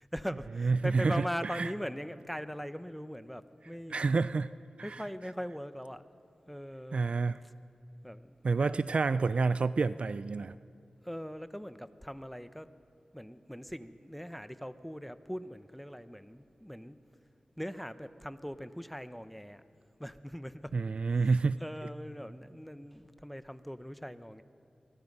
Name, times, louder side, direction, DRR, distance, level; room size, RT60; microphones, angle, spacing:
voice 1, 0.0-4.0 4.8-6.0 6.5-7.1 8.0-8.9 11.0-12.7 13.1-17.0 17.6-19.6 20.0-20.8 21.1-24.4, equal, 5° left, 12 dB, 1.0 m, -41 dB
voice 2, 0.6-1.7 3.9-4.5 4.8-5.0 6.9-7.4 8.4-10.6 20.7-21.6, right 4 dB, 65° right, 16 dB, 0.4 m, -29 dB
24.5 x 21.5 x 5.5 m, 2.7 s
cardioid pair, 50°, 2 cm